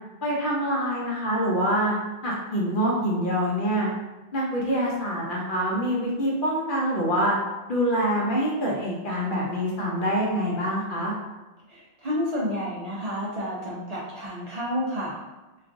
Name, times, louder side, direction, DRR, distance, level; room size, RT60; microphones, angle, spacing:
voice 1, 0.2-2.0 2.2-3.9 4.3-7.4 7.7-11.1, equal, 55° left, -4 dB, 0.8 m, -25 dB
voice 2, 11.7-15.2, equal, 45° right, -7 dB, 0.5 m, -30 dB
3.1 x 2.4 x 2.5 m, 1.1 s
omnidirectional pair, 1.2 m